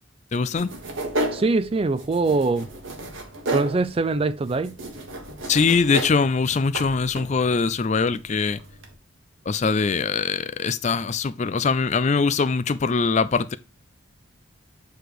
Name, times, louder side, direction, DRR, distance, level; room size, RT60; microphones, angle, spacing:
voice 1, 0.3-0.7 5.5-8.6 9.5-13.6, left 4 dB, 35° left, 0.4 m, -22 dB
sound 1, 0.6-8.9, right 2 dB, 75° right, 1.5 m, -33 dB
voice 2, 1.3-2.7 3.5-4.8, right 3 dB, 30° right, 0.4 m, -23 dB
8.0 x 3.3 x 4.7 m
head